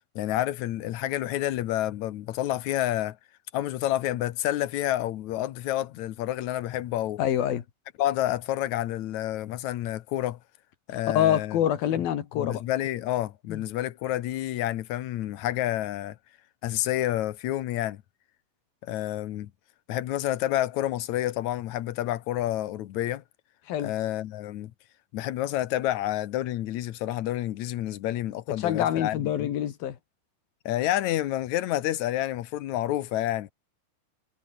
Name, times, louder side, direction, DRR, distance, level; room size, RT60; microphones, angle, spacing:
voice 1, 0.2-3.2 3.5-7.2 8.0-10.4 10.9-11.6 11.9-12.0 12.3-16.2 16.6-18.0 18.8-19.5 19.9-23.2 23.8-24.7 25.1-29.5 30.7-33.5, left 13 dB, 65° left, 2.1 m, -29 dB
voice 2, 7.2-7.6 11.1-12.6 13.5-13.6 23.7-23.9 28.6-30.0, left 10 dB, 90° left, 3.8 m, -26 dB
omnidirectional pair, 4.1 m